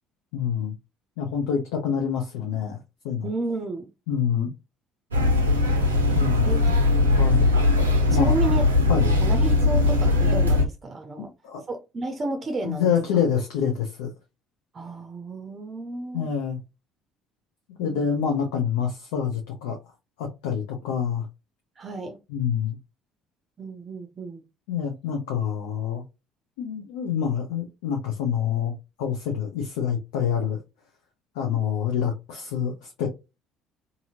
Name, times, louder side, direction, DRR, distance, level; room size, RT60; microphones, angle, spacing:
voice 1, 0.3-0.7 1.2-2.8 3.0-3.3 4.1-4.5 6.1-6.8 7.2-7.5 8.1-8.6 8.9-9.1 11.4-11.6 12.6-14.1 16.1-16.6 17.8-19.8 20.2-21.3 22.3-22.8 24.7-26.0 26.6-28.7 29.0-30.6 31.3-33.1, left 8 dB, 75° left, 0.6 m, -26 dB
voice 2, 3.2-3.9 6.4-6.6 8.0-8.6 9.2-11.3 11.7-12.9 14.7-16.3 17.8-18.1 21.8-22.2 23.6-24.4, right 2 dB, 35° right, 0.5 m, -32 dB
sound 1, 5.1-10.6, left 2 dB, 90° right, 0.5 m, -20 dB
2.7 x 2.6 x 2.7 m
hypercardioid pair, 55°, 0 cm